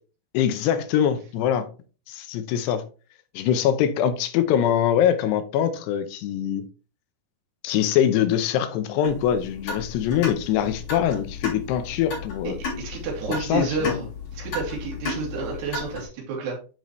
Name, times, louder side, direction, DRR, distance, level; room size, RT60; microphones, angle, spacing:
voice 1, 0.3-1.7 2.1-2.8 3.3-6.6 7.6-12.6 13.3-14.0, left 9 dB, 85° left, 2.9 m, -23 dB
sound 1, 9.0-16.0, left 4 dB, 45° left, 4.7 m, -34 dB
voice 2, 12.4-14.0 14.3-16.6, right 3 dB, 80° right, 4.4 m, -30 dB
9.8 x 5.1 x 3.1 m
omnidirectional pair, 4.8 m